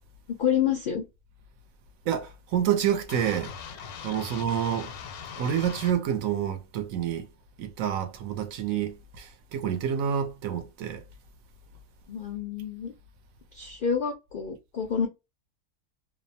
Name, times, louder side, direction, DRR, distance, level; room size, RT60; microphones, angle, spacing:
voice 1, 0.3-1.0 12.1-12.9 13.5-15.1, left 7 dB, 70° left, 0.4 m, -28 dB
voice 2, 2.1-3.5 4.0-4.9 5.4-7.3 7.6-11.0, right 9 dB, 70° right, 1.0 m, -28 dB
sound 1, 3.1-6.0, left 7 dB, 85° left, 1.1 m, -40 dB
2.7 x 2.0 x 2.6 m
omnidirectional pair, 1.5 m